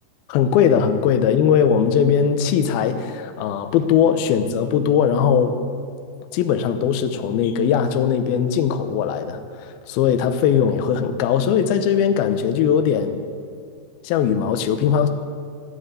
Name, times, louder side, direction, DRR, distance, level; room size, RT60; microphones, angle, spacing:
voice 1, 0.3-5.6 6.3-13.2 14.0-15.1, left 8 dB, 75° left, 8 dB, 2.5 m, -19 dB
14.5 x 11.0 x 8.2 m, 2.2 s
omnidirectional pair, 5.0 m